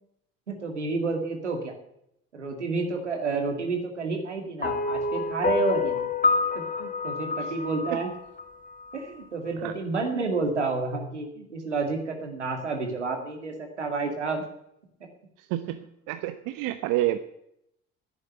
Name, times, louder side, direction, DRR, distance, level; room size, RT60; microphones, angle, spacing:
voice 1, 0.5-1.7 2.3-6.1 6.5-8.1 8.9-14.4, right 3 dB, 90° right, 4 dB, 2.2 m, -30 dB
sound 1, 4.6-9.0, left 4 dB, 25° left, 2.1 m, -28 dB
voice 2, 15.4-17.2, right 15 dB, 65° right, 10 dB, 0.9 m, -29 dB
11.0 x 9.9 x 8.6 m, 0.76 s
figure-of-eight pair, 55°, 34 cm